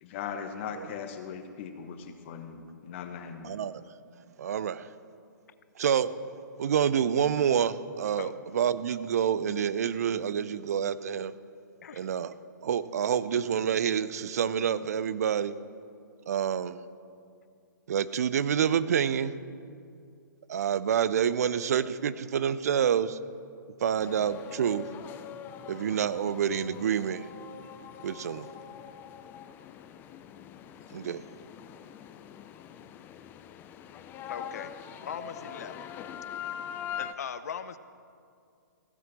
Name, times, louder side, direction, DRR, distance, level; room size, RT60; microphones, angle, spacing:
voice 1, 0.0-3.6, left 7 dB, 35° left, 7 dB, 1.4 m, -39 dB
voice 2, 3.4-3.8 4.4-4.9 5.8-6.1 6.6-11.3 11.9-12.3 12.6-15.6 16.3-16.8 17.9-19.3 20.5-23.2 23.8-24.9 25.7-27.3 28.0-28.5 30.9-31.2, right 8 dB, 50° right, 15 dB, 0.6 m, -28 dB
sound 1, 24.0-37.2, left 9 dB, 20° left, 0.5 m, -43 dB
voice 3, 34.3-34.7 35.0-35.7 37.0-37.8, left 7 dB, 55° left, 13 dB, 0.8 m, -39 dB
15.5 x 9.0 x 7.5 m, 2.4 s
figure-of-eight pair, 125°, 10 cm